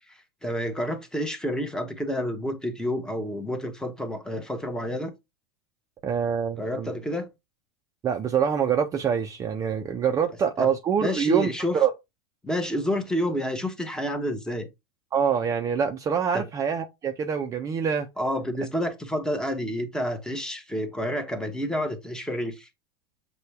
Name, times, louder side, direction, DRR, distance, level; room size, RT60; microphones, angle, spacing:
voice 1, 0.1-5.1 6.6-7.3 10.6-10.7 11.0-11.8 12.4-14.7 16.3-16.4 18.2-22.7, equal, 5° left, 0.9 m, -29 dB
voice 2, 6.0-6.9 8.0-11.9 15.1-18.1, right 7 dB, 25° right, 0.5 m, -25 dB
6.6 x 2.3 x 3.2 m
hypercardioid pair, 110°, 14 cm